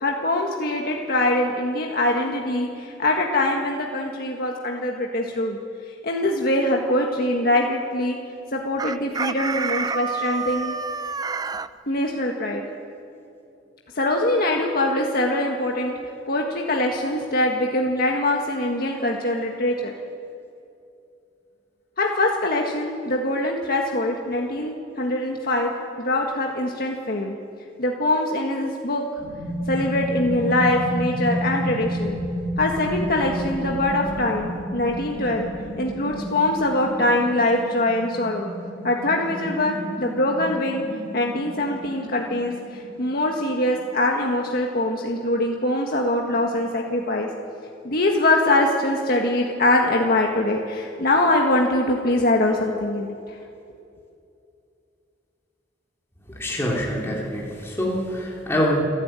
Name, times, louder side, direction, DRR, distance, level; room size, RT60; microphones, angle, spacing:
voice 1, 0.0-5.6 6.0-8.2 8.5-10.7 11.9-12.6 13.9-15.9 16.3-19.9 22.0-25.7 26.0-27.4 27.8-29.1 29.7-32.2 32.6-35.5 35.8-38.5 38.8-40.8 41.1-47.3 47.8-53.1, left 1 dB, 55° left, 0 dB, 1.7 m, -23 dB
Chicken rooster, 8.8-11.7, right 4 dB, 20° right, 0.5 m, -28 dB
sound 1, 29.2-44.7 44.9-45.0, equal, 85° right, 4.8 m, -32 dB
voice 2, 56.3-58.8, equal, 15° left, -3 dB, 3.1 m, -25 dB
29.0 x 12.0 x 9.0 m, 2.6 s
head